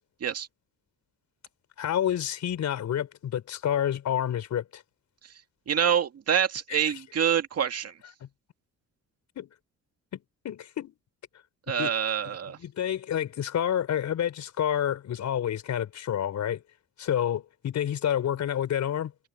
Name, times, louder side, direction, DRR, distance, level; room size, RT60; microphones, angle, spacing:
voice 1, 1.8-4.8 6.7-6.8 8.2-8.3 9.3-9.5 10.1-10.9 11.8-11.9 12.2-12.4 12.6-16.6 17.0-19.1, left 10 dB, 65° left, 5.0 m, -29 dB
voice 2, 5.7-7.9 11.7-12.6, right 8 dB, 55° right, 2.1 m, -26 dB
cardioid pair, 90°, 30 cm